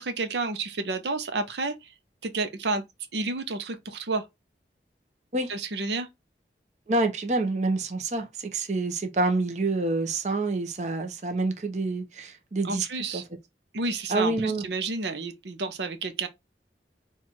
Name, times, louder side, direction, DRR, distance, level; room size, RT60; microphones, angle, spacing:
voice 1, 0.0-1.9 2.2-2.8 3.1-4.3 5.5-6.1 12.6-13.2 13.7-16.3, right 3 dB, 80° right, 0.7 m, -30 dB
voice 2, 6.9-12.9 13.1-13.2 14.1-14.6, right 2 dB, 40° right, 0.7 m, -27 dB
4.4 x 2.4 x 4.3 m
head